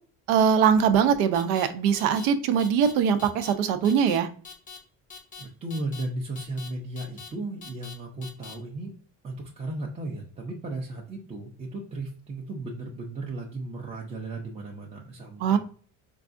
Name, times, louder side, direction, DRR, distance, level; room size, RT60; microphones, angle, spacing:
voice 1, 0.3-4.3 15.4-15.6, right 7 dB, 85° right, 9 dB, 0.6 m, -22 dB
sound 1, 1.3-1.7 1.9-2.3 2.6-2.9 3.2-3.5 3.8-4.2 4.4-4.8 5.1-5.4 5.7-6.0 6.3-6.7 7.0-7.3 7.6-7.9 8.2-8.5, left 5 dB, 20° left, 0.6 m, -43 dB
voice 2, 5.4-8.9 9.2-15.6, right 2 dB, 20° right, -3 dB, 0.5 m, -35 dB
4.7 x 2.3 x 2.5 m, 0.43 s
cardioid pair, 145°, 37 cm